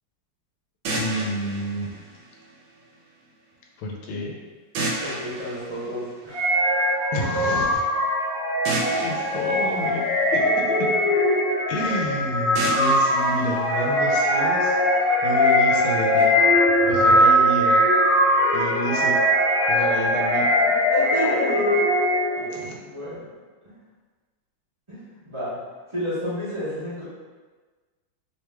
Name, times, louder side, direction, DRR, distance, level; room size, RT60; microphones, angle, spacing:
sound 1, 0.8-2.9 4.7-6.7 8.6-10.9 12.5-14.6, right 2 dB, 80° right, 1.3 m, -32 dB
voice 1, 1.0-1.9 3.8-4.3 7.1-7.8 9.0-10.0 10.3-10.9 11.7-14.8 15.2-16.4 16.9-17.8 18.5-19.2 19.7-20.5 22.5-22.8, left 1 dB, 80° left, -1 dB, 1.4 m, -29 dB
voice 2, 5.0-6.6 20.7-21.7 22.3-23.2 23.6-23.7 24.9-25.6 25.9-27.1, left 1 dB, 20° right, -13 dB, 1.0 m, -31 dB
sound 2, 6.3-22.5, equal, 20° left, 1.0 m, -21 dB
3.3 x 3.0 x 2.2 m, 1.3 s
omnidirectional pair, 2.2 m